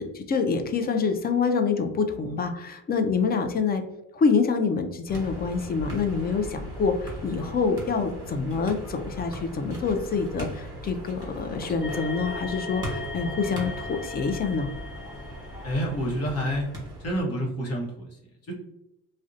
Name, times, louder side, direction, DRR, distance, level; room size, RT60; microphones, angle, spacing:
voice 1, 0.0-3.8 4.1-14.7, left 5 dB, 30° left, 6 dB, 0.4 m, -26 dB
sound 1, 5.1-17.2, right 1 dB, 15° right, 1.1 m, -38 dB
sound 2, 11.8-16.1, left 3 dB, 90° left, 0.8 m, -38 dB
voice 2, 15.6-16.7 17.0-17.9 18.5-18.6, equal, 55° left, -2 dB, 0.9 m, -27 dB
2.6 x 2.1 x 2.4 m, 0.89 s
cardioid pair, 90°, 30 cm